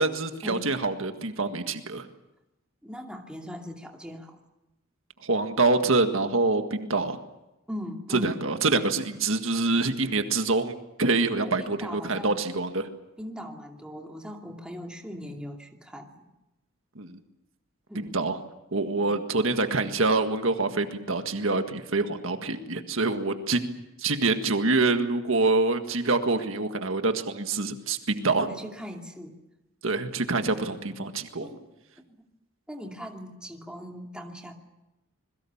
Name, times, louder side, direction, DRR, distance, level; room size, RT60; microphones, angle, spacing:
voice 1, 0.0-2.1 5.2-7.2 8.1-12.9 17.0-17.2 18.0-18.4 18.7-23.7 24.0-28.5 29.8-31.5, right 3 dB, 70° right, 7 dB, 1.7 m, -26 dB
voice 2, 2.8-4.4 7.7-8.5 11.4-12.4 13.2-16.2 17.9-18.1 19.0-19.1 28.5-29.3 30.5-30.6 31.4-31.7 32.1-32.2 32.7-34.5, equal, 5° right, 1 dB, 2.5 m, -40 dB
27.0 x 22.0 x 7.2 m, 0.95 s
head